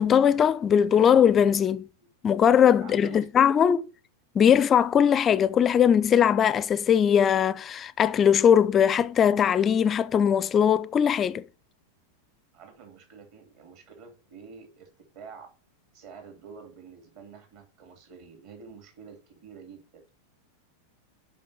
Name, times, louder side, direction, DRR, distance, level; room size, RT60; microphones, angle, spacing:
voice 1, 0.0-1.9 2.2-3.8 4.3-11.4, left 8 dB, 25° left, 0.4 m, -20 dB
voice 2, 2.8-3.7 12.5-15.5 15.9-20.0, right 6 dB, 45° right, 3.0 m, -48 dB
7.5 x 5.6 x 6.8 m
figure-of-eight pair, 90°, 0 cm